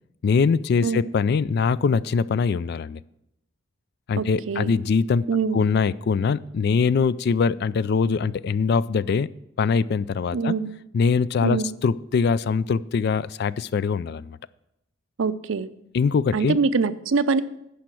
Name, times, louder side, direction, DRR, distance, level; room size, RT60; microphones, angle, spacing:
voice 1, 0.2-3.0 4.1-5.3 5.5-9.3 9.6-10.5 10.9-14.4 15.9-16.6, left 5 dB, 55° left, 18 dB, 0.3 m, -22 dB
voice 2, 4.2-4.7 5.3-5.7 10.3-10.7 11.4-11.7 15.2-15.7 16.3-17.4, right 4 dB, 80° right, 13 dB, 0.6 m, -24 dB
10.5 x 5.7 x 7.6 m, 0.82 s
head